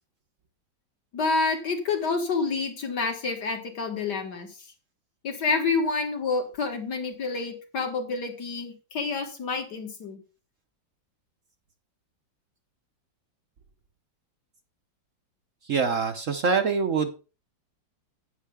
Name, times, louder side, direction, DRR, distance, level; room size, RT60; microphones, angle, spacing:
voice 1, 1.1-4.5 5.2-10.2, left 4 dB, 60° left, 4 dB, 2.4 m, -28 dB
voice 2, 15.6-17.1, right 5 dB, 55° right, 7 dB, 0.9 m, -24 dB
11.0 x 9.2 x 3.5 m, 0.33 s
omnidirectional pair, 2.1 m